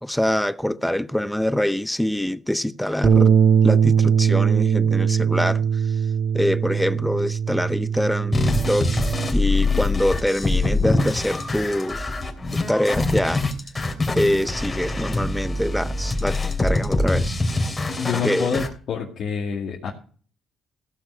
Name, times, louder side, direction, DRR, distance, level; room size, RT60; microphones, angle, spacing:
voice 1, 0.0-3.4 3.6-5.7 6.3-12.1 12.5-13.5 14.1-17.4 18.2-18.5, left 1 dB, 5° left, 0.6 m, -24 dB
Bass guitar, 3.0-9.3, right 7 dB, 45° right, 2.1 m, -20 dB
sound 1, 8.3-18.7, left 2 dB, 25° left, 3.0 m, -24 dB
voice 2, 18.0-19.9, left 6 dB, 65° left, 2.3 m, -27 dB
16.0 x 6.2 x 5.7 m
cardioid pair, 90°, 0 cm